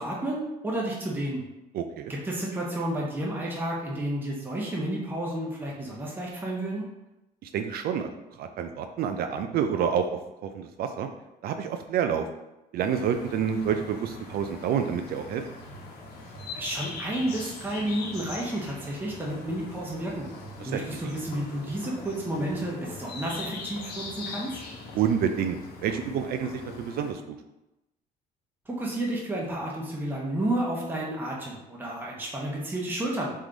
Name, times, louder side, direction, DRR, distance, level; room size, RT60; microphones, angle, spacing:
voice 1, 0.0-1.4 2.1-6.8 16.5-20.3 20.6-24.6 28.7-33.3, right 1 dB, 10° right, -3 dB, 0.9 m, -31 dB
voice 2, 1.7-2.1 7.4-8.1 8.4-11.1 11.4-12.3 12.7-15.4 20.6-21.1 24.9-27.4, right 8 dB, 65° right, 7 dB, 0.4 m, -28 dB
sound 1, 12.8-27.1, left 3 dB, 75° left, 1.0 m, -41 dB
3.7 x 3.1 x 3.8 m, 0.94 s
cardioid pair, 110°, 17 cm